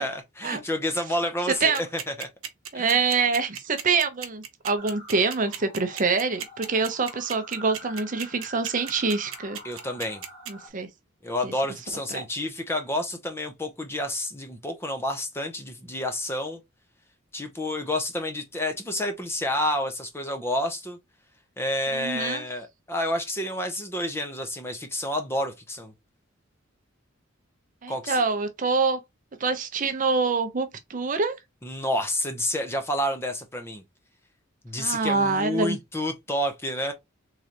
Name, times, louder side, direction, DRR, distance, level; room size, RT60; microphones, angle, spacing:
voice 1, 0.0-2.3 2.7-3.0 9.6-10.2 11.2-16.6 17.3-21.0 21.6-25.9 27.9-28.2 31.6-33.8 34.6-36.9, left 1 dB, 10° left, 0.6 m, -29 dB
sound 1, 1.6-10.5, right 8 dB, 80° right, 0.8 m, -35 dB
voice 2, 2.7-9.6 10.5-10.9 11.4-11.5 12.1-12.2 21.9-22.4 27.8-29.0 29.4-31.3 34.8-35.8, right 4 dB, 40° right, 0.6 m, -25 dB
sound 2, 4.8-10.7, equal, 30° left, 1.4 m, -46 dB
3.8 x 3.2 x 2.8 m
head